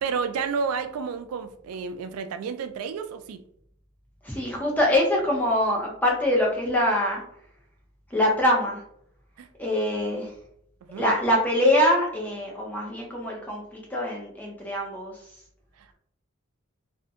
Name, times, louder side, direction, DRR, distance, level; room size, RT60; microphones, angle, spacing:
voice 1, 0.0-3.4 9.4-9.5 10.9-11.1 15.8-15.9, right 5 dB, 90° right, 9 dB, 0.3 m, -31 dB
voice 2, 4.2-7.2 8.1-8.8 9.6-10.3 11.0-15.1, left 1 dB, 10° left, -2 dB, 0.6 m, -24 dB
2.6 x 2.1 x 2.6 m, 0.68 s
head